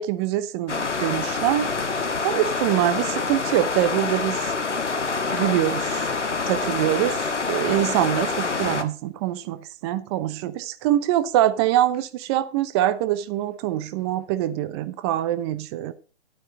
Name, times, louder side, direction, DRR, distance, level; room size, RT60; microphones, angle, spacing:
voice 1, 0.0-4.5 5.3-6.1 6.5-15.9, right 13 dB, 25° right, 0.8 m, -24 dB
sound 1, 0.7-8.8, left 4 dB, 90° left, 1.7 m, -26 dB
11.5 x 9.0 x 5.3 m
hypercardioid pair, 135°, 35 cm